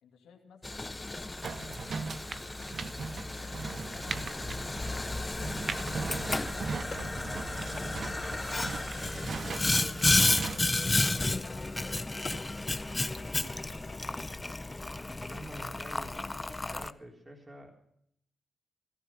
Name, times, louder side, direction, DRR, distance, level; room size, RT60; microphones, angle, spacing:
voice 1, 0.0-1.9 3.3-7.0 7.8-10.3 10.9-14.7, left 6 dB, 90° left, 1 dB, 2.4 m, -57 dB
Boiling, 0.6-16.9, left 2 dB, 20° left, 0.5 m, -32 dB
sound 1, 1.4-10.6, right 5 dB, 55° right, 0.8 m, -39 dB
sound 2, 6.5-7.9 9.2-9.6 9.9-10.2 10.5-11.6 11.8-12.5 12.8-14.1, left 3 dB, 35° left, 3.4 m, -48 dB
voice 2, 15.2-17.7, right 1 dB, 25° right, 0 dB, 3.7 m, -48 dB
15.5 x 14.5 x 5.8 m, 0.70 s
cardioid pair, 65°, 0 cm